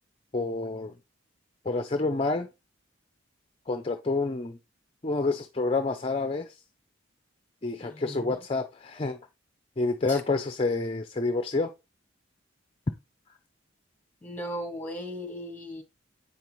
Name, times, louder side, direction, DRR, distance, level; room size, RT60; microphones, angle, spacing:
voice 1, 0.3-0.9 1.6-2.5 3.7-4.6 5.0-6.6 7.6-9.2 9.8-11.7, left 3 dB, 30° left, 0.5 m, -28 dB
voice 2, 7.8-8.4 10.1-10.2 14.2-15.8, equal, 10° left, 1.8 m, -37 dB
8.3 x 5.3 x 3.0 m
head